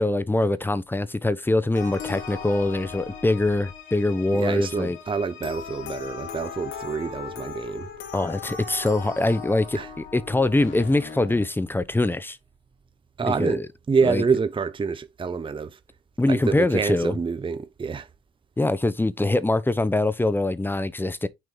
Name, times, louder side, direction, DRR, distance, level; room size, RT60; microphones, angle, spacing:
voice 1, 0.0-5.0 8.1-12.4 13.2-13.7 14.0-14.2 16.2-17.1 18.6-21.3, left 2 dB, 10° left, 0.7 m, -23 dB
sound 1, 1.7-11.5, left 6 dB, 85° left, 2.1 m, -38 dB
voice 2, 4.3-7.9 9.7-9.9 13.2-15.8 16.3-18.1, right 5 dB, 25° right, 0.6 m, -27 dB
6.3 x 4.3 x 3.8 m
cardioid pair, 90°, 20 cm